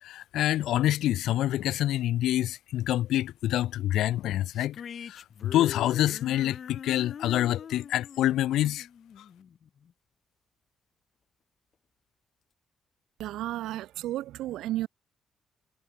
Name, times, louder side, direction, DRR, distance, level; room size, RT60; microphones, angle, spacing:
voice 1, 0.0-4.8 5.1-8.9, left 13 dB, 80° left, 3.8 m, -27 dB
sound 1, 4.6-9.9, left 7 dB, 55° left, 3.5 m, -42 dB
voice 2, 13.2-14.9, right 14 dB, 85° right, 3.0 m, -33 dB
cardioid pair, 90°, 0 cm